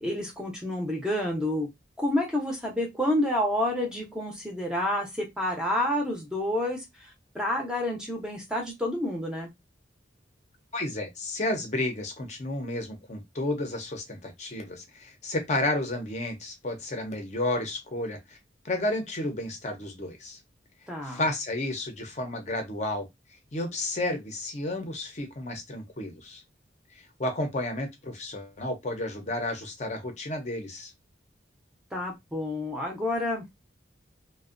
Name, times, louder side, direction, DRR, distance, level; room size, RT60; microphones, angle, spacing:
voice 1, 0.0-1.7 2.0-9.5 20.9-21.2 31.9-33.5, left 1 dB, 5° right, 0.6 m, -29 dB
voice 2, 10.7-18.4 18.6-20.4 21.0-23.1 23.5-26.4 26.9-30.9, left 1 dB, 40° left, 0.6 m, -32 dB
2.5 x 2.1 x 2.4 m
head